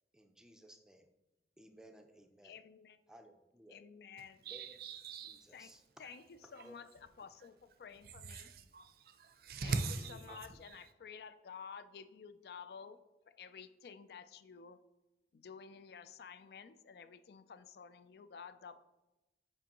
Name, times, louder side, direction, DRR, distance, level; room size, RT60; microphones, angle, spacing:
voice 1, 0.1-1.1 1.6-2.6 3.1-3.8 4.4-4.8 5.2-6.1 6.4-6.8 10.0-10.5, right 1 dB, 5° right, 5 dB, 0.4 m, -59 dB
voice 2, 2.4-3.0 3.7-4.5 5.5-5.7 6.0-8.5 9.6-9.7 10.1-13.0 13.3-14.8 15.3-18.8, left 6 dB, 60° left, 12 dB, 0.3 m, -52 dB
voice 3, 4.4-5.5 8.0-10.8, right 3 dB, 55° right, 8 dB, 0.5 m, -41 dB
7.5 x 5.4 x 2.9 m, 0.99 s
head